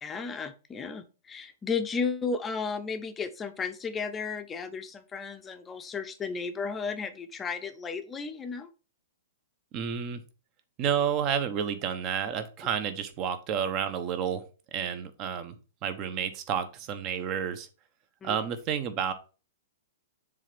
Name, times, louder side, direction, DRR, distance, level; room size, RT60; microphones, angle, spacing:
voice 1, 0.0-8.7 18.2-18.4, left 5 dB, 15° left, 8 dB, 0.7 m, -34 dB
voice 2, 9.7-10.2 10.8-14.4 14.7-15.6 15.8-17.7 18.2-19.1, right 8 dB, 35° right, 11 dB, 1.0 m, -30 dB
7.2 x 3.5 x 5.1 m, 0.34 s
hypercardioid pair, 140°, 0 cm